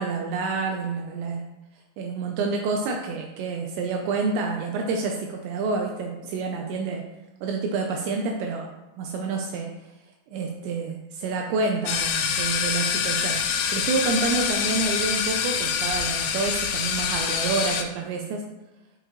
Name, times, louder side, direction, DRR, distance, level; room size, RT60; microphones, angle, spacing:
voice 1, 0.0-1.4 2.0-7.0 7.4-8.7 9.0-9.7 10.3-13.4 13.7-18.4, right 4 dB, 85° right, 1 dB, 2.5 m, -28 dB
sound 1, 11.9-17.8, left 7 dB, 80° left, 3.2 m, -26 dB
13.0 x 4.8 x 3.1 m, 1.0 s
omnidirectional pair, 6.0 m